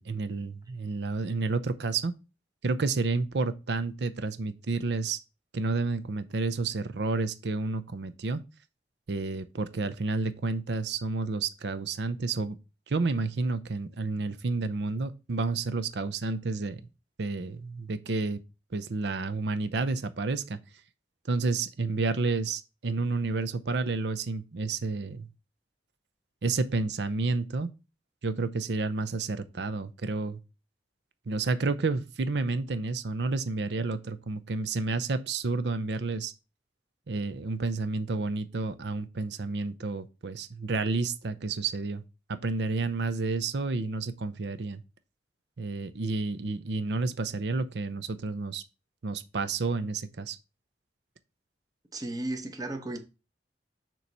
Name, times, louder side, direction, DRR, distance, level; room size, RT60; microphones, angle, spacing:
voice 1, 0.0-2.1 2.6-5.2 5.5-8.4 9.1-12.5 12.9-16.8 17.2-18.4 18.7-20.6 21.3-25.3 26.4-27.7 28.2-30.4 31.3-36.3 37.1-42.0 42.3-44.8 45.6-48.6 49.0-50.4, right 3 dB, 70° right, 0.6 m, -30 dB
voice 2, 51.9-53.0, right 2 dB, 20° right, 1.0 m, -34 dB
6.9 x 3.1 x 5.3 m
head